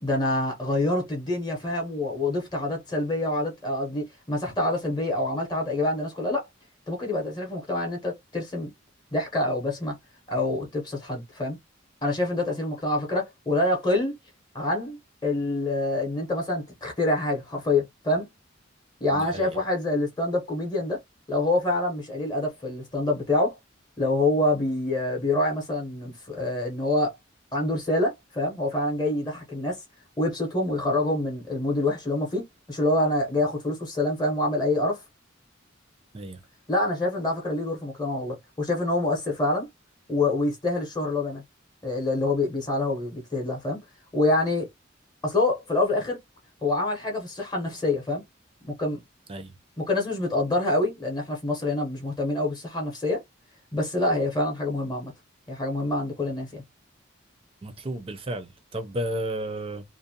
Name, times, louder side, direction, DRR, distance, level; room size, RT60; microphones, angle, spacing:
voice 1, 0.0-6.5 6.9-8.7 9.1-10.0 10.3-11.6 12.0-14.1 14.5-18.3 19.0-21.0 21.3-23.6 24.0-27.1 27.5-29.8 30.2-35.0 36.7-39.7 40.1-41.4 41.8-43.8 44.1-44.7 45.2-46.2 46.6-48.2 48.6-49.0 49.8-53.2 53.7-55.1 55.5-56.6, left 2 dB, 20° left, 0.7 m, -26 dB
voice 2, 19.1-19.6 36.1-36.4 49.3-49.5 57.6-59.8, right 1 dB, 30° right, 0.5 m, -33 dB
2.5 x 2.1 x 2.6 m
head